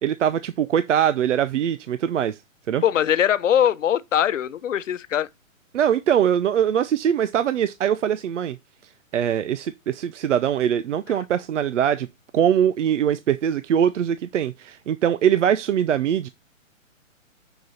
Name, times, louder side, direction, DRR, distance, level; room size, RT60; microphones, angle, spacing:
voice 1, 0.0-2.4 2.7-2.8 5.7-8.6 9.1-12.1 12.3-16.3, right 9 dB, 65° right, 0.7 m, -22 dB
voice 2, 2.8-5.3, left 10 dB, 65° left, 0.9 m, -21 dB
6.6 x 6.1 x 4.1 m
hypercardioid pair, 140°, 40 cm